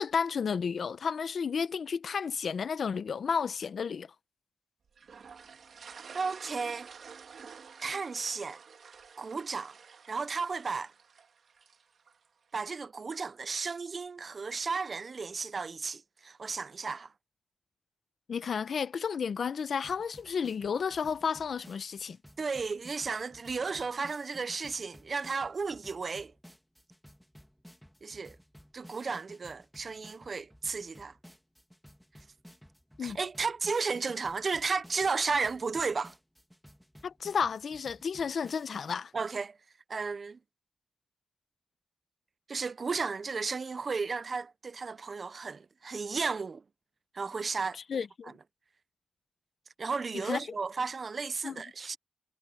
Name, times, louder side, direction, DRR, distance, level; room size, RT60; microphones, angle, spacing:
voice 1, 0.0-4.1 18.3-22.2 33.0-33.2 37.0-39.1 47.9-48.3 50.2-50.4 51.4-51.6, left 6 dB, 60° left, 0.8 m, -32 dB
sound 1, 5.0-12.3, right 6 dB, 60° right, 2.0 m, -50 dB
voice 2, 6.1-6.9 7.8-8.6 9.2-9.8 10.1-10.9 12.5-17.1 22.4-26.3 28.0-28.4 28.7-31.2 33.0-36.1 39.1-39.6 39.9-40.4 42.5-46.6 47.1-48.3 49.8-52.0, right 4 dB, 40° right, 0.4 m, -34 dB
sound 2, 19.8-39.0, equal, ahead, 2.2 m, -56 dB
wide cardioid pair, 170°, 0 cm